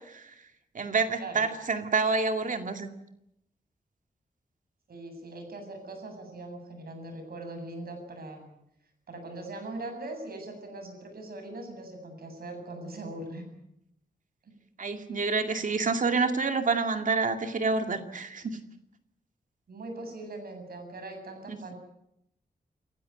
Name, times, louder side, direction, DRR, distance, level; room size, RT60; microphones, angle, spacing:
voice 1, 0.7-2.9 14.8-18.6 21.5-21.7, right 4 dB, 55° right, 6 dB, 2.3 m, -28 dB
voice 2, 4.9-8.5 9.1-13.5 14.4-14.5 19.7-21.7, right 2 dB, 70° right, 5 dB, 7.9 m, -41 dB
29.0 x 15.5 x 9.2 m, 0.79 s
wide cardioid pair, 120°, 16 cm